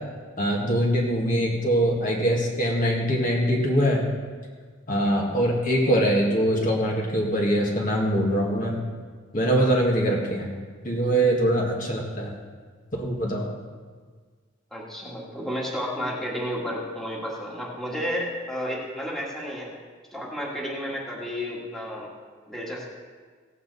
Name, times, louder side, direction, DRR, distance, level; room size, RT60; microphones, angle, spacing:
voice 1, 0.4-4.0 4.9-8.8 9.3-10.5 10.8-12.3 13.0-13.5, right 1 dB, 40° left, -2 dB, 1.7 m, -23 dB
voice 2, 14.7-19.7 20.1-22.1 22.5-22.9, equal, ahead, -4 dB, 1.9 m, -32 dB
17.0 x 8.4 x 4.1 m, 1.5 s
head